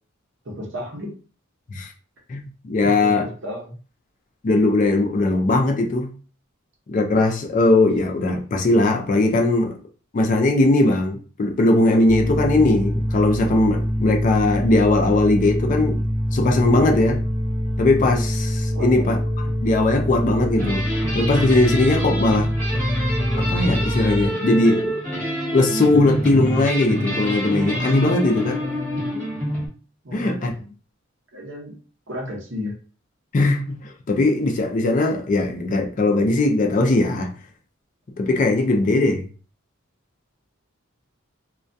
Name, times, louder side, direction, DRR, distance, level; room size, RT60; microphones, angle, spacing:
voice 1, 0.4-1.1 2.8-3.8 18.7-19.1 28.5-28.6 30.0-30.7 31.3-31.8 32.1-32.7, left 1 dB, 65° right, 0.8 m, -33 dB
voice 2, 2.3-3.2 4.4-6.1 6.9-9.8 10.1-16.0 16.3-17.2 17.8-19.2 19.6-20.9 21.1-22.5 23.4-25.0 25.5-28.6 30.1-30.5 33.3-37.3 38.2-39.3, left 2 dB, 40° left, 0.4 m, -19 dB
sound 1, 12.1-24.3, equal, 25° right, 0.8 m, -24 dB
sound 2, 20.6-29.7, equal, 5° left, 1.2 m, -26 dB
2.2 x 2.2 x 2.6 m
head